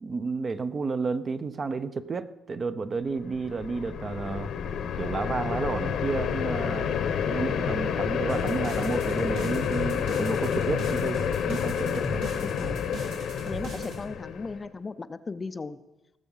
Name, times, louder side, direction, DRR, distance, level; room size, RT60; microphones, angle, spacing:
voice 1, 0.0-4.5 4.9-7.0 7.2-11.2 11.5-12.3, right 4 dB, 35° right, 11 dB, 0.7 m, -31 dB
sound 1, 3.2-14.6, left 7 dB, 70° left, 1.1 m, -29 dB
sound 2, 8.3-14.0, right 2 dB, 90° right, 3.9 m, -39 dB
voice 2, 12.4-15.8, left 4 dB, 25° left, 12 dB, 0.5 m, -37 dB
18.5 x 7.0 x 5.6 m, 0.97 s
cardioid pair, 105°, 0 cm